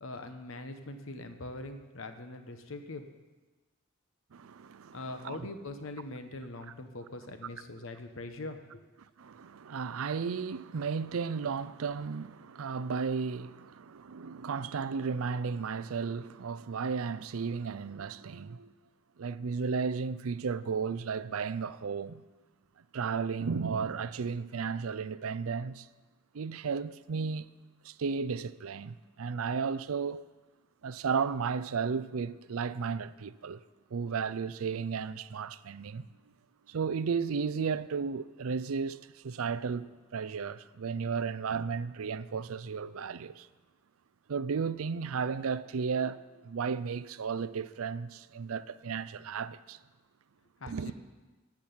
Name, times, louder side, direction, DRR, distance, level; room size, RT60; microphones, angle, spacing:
voice 1, 0.0-3.1 4.9-8.8 50.6-50.9, left 2 dB, 70° left, 1.1 m, -42 dB
voice 2, 4.3-5.5 9.2-18.7 19.2-22.2 22.9-25.9 26.3-27.5 27.8-30.3 30.8-33.6 33.9-36.1 36.7-43.5 44.3-49.8 50.7-50.9, right 5 dB, 85° right, 0.5 m, -34 dB
13.5 x 6.0 x 8.7 m
head